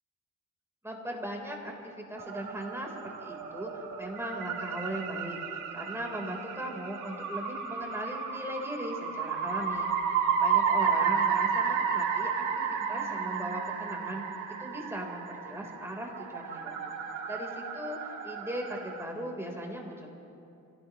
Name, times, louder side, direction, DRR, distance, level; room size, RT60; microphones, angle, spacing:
voice 1, 0.8-9.9 10.4-14.2 14.6-16.8 17.3-20.1, equal, 10° right, 0 dB, 3.7 m, -38 dB
sound 1, 2.2-19.0, right 6 dB, 85° right, 1.9 m, -32 dB
26.5 x 17.5 x 3.0 m, 2.8 s
cardioid pair, 90°, 30 cm